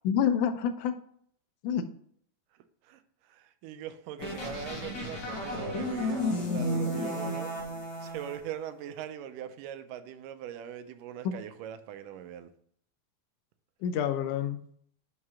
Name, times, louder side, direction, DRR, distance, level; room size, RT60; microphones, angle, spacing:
voice 1, 0.0-1.0 1.6-1.9 11.3-11.4 13.8-14.6, left 8 dB, 80° left, 2.0 m, -28 dB
voice 2, 2.8-7.5 8.0-12.5, right 9 dB, 90° right, 2.3 m, -41 dB
sound 1, 4.2-8.4, left 1 dB, 45° left, 1.6 m, -32 dB
5.7 x 4.8 x 5.6 m
omnidirectional pair, 3.7 m